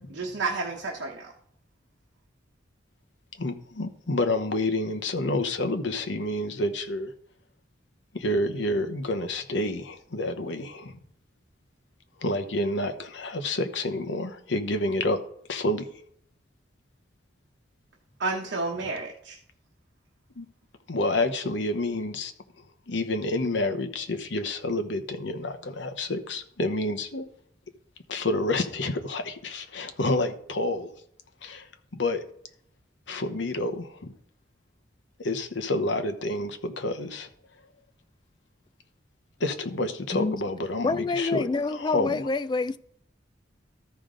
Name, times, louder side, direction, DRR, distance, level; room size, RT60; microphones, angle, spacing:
voice 1, 0.1-1.3 18.2-19.4, right 3 dB, 80° right, 1.0 m, -31 dB
voice 2, 3.4-7.1 8.1-11.0 12.2-15.2 15.5-15.9 20.4-20.5 20.9-22.3 22.9-27.3 28.1-30.9 31.4-31.7 31.9-32.2 33.1-34.1 35.2-37.3 39.4-42.2, left 2 dB, 75° left, 0.9 m, -29 dB
voice 3, 40.8-42.8, left 3 dB, 25° left, 0.3 m, -27 dB
13.5 x 5.2 x 3.8 m
head